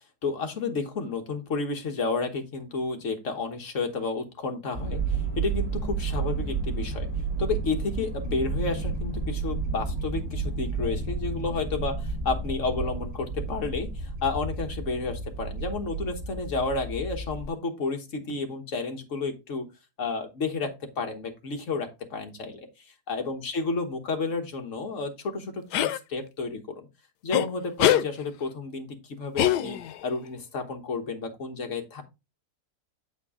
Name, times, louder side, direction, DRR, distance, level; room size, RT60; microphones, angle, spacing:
voice 1, 0.2-7.1 7.4-13.9 14.2-19.7 20.0-22.7 23.1-26.9 27.2-29.8 30.0-32.0, left 4 dB, 50° left, 4 dB, 1.5 m, -31 dB
sound 1, 4.7-17.5, right 4 dB, 40° right, 1.7 m, -31 dB
sound 2, 25.7-26.0 27.3-27.5 27.8-28.1 29.4-30.0, left 12 dB, 90° left, 1.2 m, -22 dB
7.9 x 4.5 x 3.6 m, 0.25 s
omnidirectional pair, 1.7 m